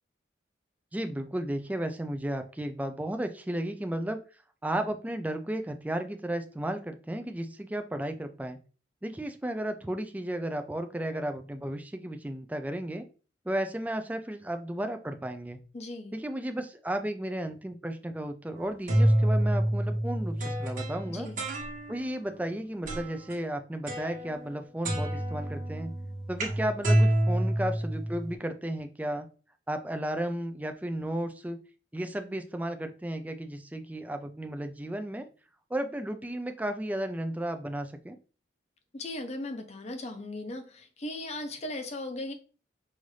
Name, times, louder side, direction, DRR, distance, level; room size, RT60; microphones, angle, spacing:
voice 1, 0.9-4.2 4.6-8.6 9.0-13.0 13.5-15.6 16.1-21.3 21.9-25.9 26.3-29.3 29.7-31.6 31.9-35.3 35.7-38.2, right 1 dB, 10° right, 0.4 m, -34 dB
voice 2, 15.7-16.1 21.1-21.4 38.9-42.3, left 1 dB, 35° left, 0.6 m, -37 dB
sound 1, 18.6-22.1 22.9-23.3 23.9-24.6 24.8-28.3, right 1 dB, 45° right, 1.2 m, -28 dB
5.5 x 2.5 x 3.1 m
head